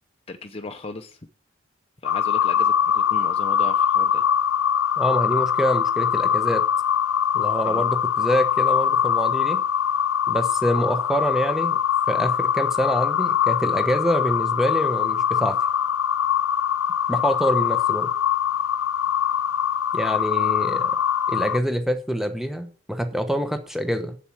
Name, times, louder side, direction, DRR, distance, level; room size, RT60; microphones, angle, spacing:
voice 1, 0.3-1.2 2.0-4.2 7.6-7.8, left 2 dB, 30° left, 5 dB, 0.7 m, -36 dB
sound 1, 2.0-21.6, left 9 dB, 90° left, 0.4 m, -22 dB
voice 2, 5.0-6.6 7.3-9.6 10.3-11.8 12.1-15.6 17.1-18.1 19.9-21.0 21.3-24.2, equal, ahead, 8 dB, 1.1 m, -25 dB
7.8 x 7.6 x 7.3 m, 0.43 s
head